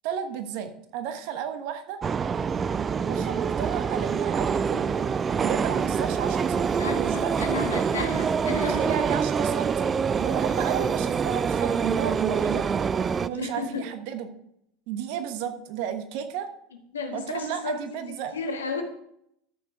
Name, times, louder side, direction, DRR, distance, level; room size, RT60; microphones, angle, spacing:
voice 1, 0.0-2.0 3.1-4.9 5.4-7.7 8.5-9.9 10.2-12.7 13.2-14.3 14.9-16.5 17.1-18.4, right 9 dB, 60° right, 9 dB, 1.2 m, -33 dB
sound 1, 2.0-13.3, right 6 dB, 30° right, 0.4 m, -26 dB
voice 2, 6.8-9.2 13.3-13.8 16.9-18.8, left 4 dB, 80° left, 5 dB, 1.4 m, -33 dB
13.0 x 7.0 x 3.5 m, 0.74 s
figure-of-eight pair, 75°, 0 cm